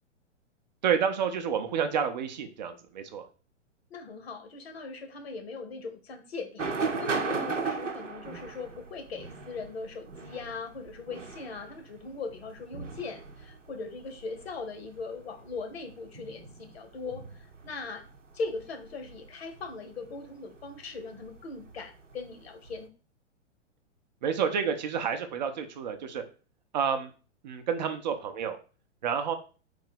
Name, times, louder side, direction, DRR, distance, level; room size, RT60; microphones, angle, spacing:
voice 1, 0.8-3.3 24.2-26.2 26.7-27.1 27.4-28.6 29.0-29.3, right 7 dB, 40° right, 7 dB, 0.6 m, -29 dB
voice 2, 3.9-18.1 18.3-22.9, left 4 dB, 55° left, 7 dB, 1.1 m, -40 dB
sound 1, 6.6-22.9, right 4 dB, 85° right, 0.7 m, -38 dB
3.9 x 2.8 x 4.7 m, 0.36 s
figure-of-eight pair, 110°, 36 cm